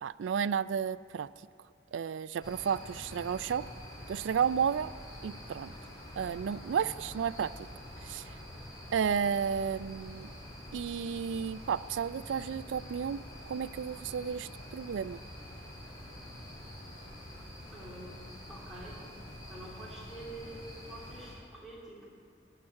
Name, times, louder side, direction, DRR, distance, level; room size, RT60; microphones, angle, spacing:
voice 1, 0.0-1.3 1.9-3.6 4.1-4.9 5.2-5.7 6.2-7.5 8.0-8.2 8.9-10.3 10.7-13.2 13.5-15.2, right 7 dB, 85° right, 17 dB, 0.3 m, -32 dB
sound 1, 2.4-21.4, left 1 dB, 25° left, 3.5 m, -47 dB
voice 2, 17.7-18.2 18.5-19.0 19.5-22.1, right 1 dB, 5° right, -7 dB, 3.3 m, -47 dB
16.0 x 5.9 x 9.8 m, 2.3 s
head